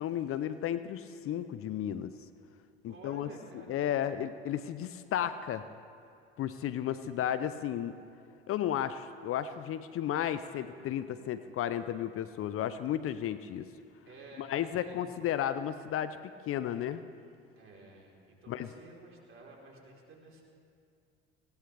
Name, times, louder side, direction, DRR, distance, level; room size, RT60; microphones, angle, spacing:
voice 1, 0.0-2.1 2.8-3.3 3.5-5.7 6.4-8.0 8.5-13.7 14.4-17.0 18.5-18.7, left 10 dB, 45° left, 12 dB, 0.7 m, -33 dB
voice 2, 2.9-4.1 14.0-15.0 17.6-20.5, right 2 dB, 40° right, -1 dB, 4.0 m, -52 dB
20.0 x 18.0 x 3.4 m, 2.4 s
hypercardioid pair, 65°, 31 cm